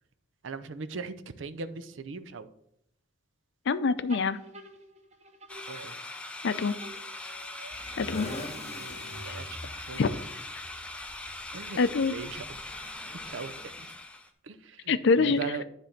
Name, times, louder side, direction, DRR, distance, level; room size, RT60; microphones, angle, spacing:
voice 1, 0.4-2.5 5.7-5.9 9.3-10.1 11.5-11.8 12.1-12.4 13.3-13.7 14.4-15.6, right 4 dB, 70° right, 12 dB, 0.6 m, -39 dB
voice 2, 3.7-4.4 6.4-6.8 8.0-8.3 9.3-9.4 10.0-10.1 11.8-12.1 14.9-15.4, left 4 dB, 65° left, 13 dB, 0.5 m, -25 dB
sound 1, 4.1-6.5 6.8-9.7, right 1 dB, 35° right, 0.9 m, -49 dB
sound 2, 5.5-14.3, left 2 dB, 5° left, 0.6 m, -41 dB
sound 3, 7.7-12.7, left 1 dB, 35° left, 1.2 m, -44 dB
10.0 x 3.4 x 5.8 m, 0.76 s
head